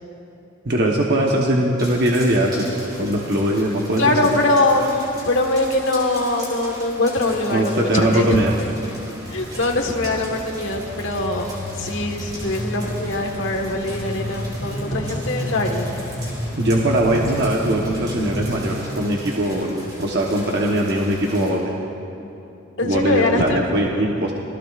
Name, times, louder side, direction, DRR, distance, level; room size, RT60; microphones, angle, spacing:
voice 1, 0.6-4.4 7.5-8.5 16.6-21.7 22.8-24.3, right 1 dB, 55° right, -1 dB, 1.0 m, -21 dB
sound 1, 1.8-21.5, equal, 20° right, 4.2 m, -39 dB
voice 2, 4.0-8.2 8.6-8.7 9.3-11.5 11.8-15.9 22.8-23.6, left 2 dB, 65° left, 2 dB, 1.5 m, -22 dB
sound 2, 9.3-18.5, equal, 30° left, 3.4 m, -31 dB
27.0 x 18.5 x 2.5 m, 2.8 s
head